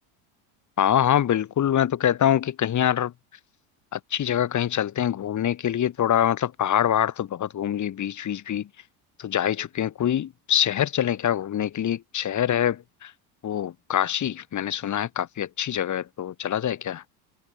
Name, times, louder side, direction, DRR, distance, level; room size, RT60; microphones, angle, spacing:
voice 1, 0.8-3.1 3.9-8.7 9.2-13.1 13.4-17.0, left 10 dB, 40° left, 6.2 m, -25 dB
supercardioid pair, 110°, 44 cm